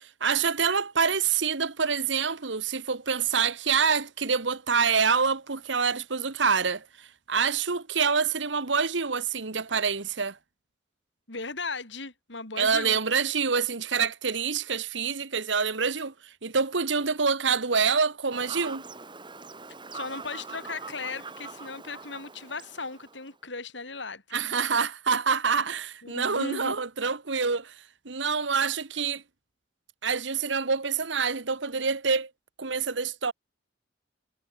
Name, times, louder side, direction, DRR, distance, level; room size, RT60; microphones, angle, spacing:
voice 1, 0.0-10.4 12.6-16.1 16.4-18.8 24.3-27.7 28.0-29.2 30.0-32.3 32.6-33.3, right 5 dB, 75° right, 1.4 m, -26 dB
voice 2, 11.3-13.0 19.9-24.4 26.0-26.7, left 3 dB, 75° left, 6.6 m, -37 dB
Fowl / Bird vocalization bird call bird song, 18.3-23.3, right 4 dB, 25° right, 5.1 m, -43 dB
head